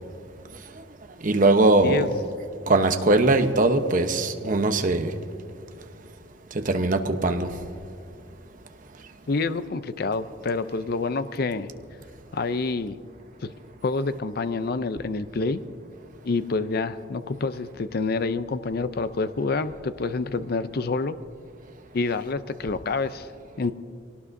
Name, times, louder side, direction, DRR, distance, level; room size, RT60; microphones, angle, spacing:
voice 1, 1.2-2.1 2.7-5.1 6.5-7.5, right 2 dB, 45° right, 6 dB, 0.9 m, -21 dB
voice 2, 9.3-11.7 12.3-13.0 13.4-13.5 13.8-15.6 16.2-21.2 21.9-23.3 23.6-23.7, left 3 dB, 55° left, 12 dB, 0.5 m, -27 dB
23.5 x 18.0 x 2.7 m, 2.3 s
head